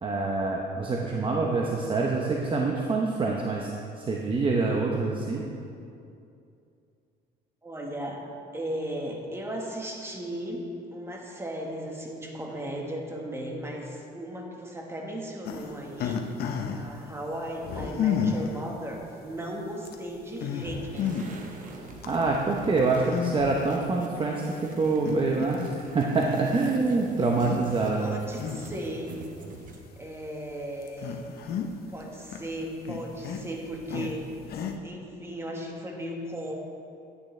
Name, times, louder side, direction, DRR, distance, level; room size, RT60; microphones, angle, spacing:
voice 1, 0.0-5.4 22.1-28.1, right 3 dB, 30° right, -1 dB, 0.8 m, -26 dB
voice 2, 7.6-8.2 8.5-16.2 16.7-21.2 28.0-29.1 30.0-31.2 31.9-34.3 34.8-36.6, right 1 dB, 15° right, 0 dB, 1.4 m, -36 dB
sound 1, 15.5-16.9 17.6-18.6 19.3-19.4 19.9-20.0 20.4-21.4 21.8-22.1 23.1-23.7 24.2-24.3 25.0-25.9 26.2-26.4 27.3-27.6 28.0-28.9 29.6-29.7 30.3-30.4 30.8-32.0 32.3-34.7, left 7 dB, 65° left, 0.8 m, -31 dB
sound 2, 20.9-30.0, right 3 dB, 50° right, 1.0 m, -46 dB
11.0 x 9.0 x 3.3 m, 2.6 s
cardioid pair, 110°, 17 cm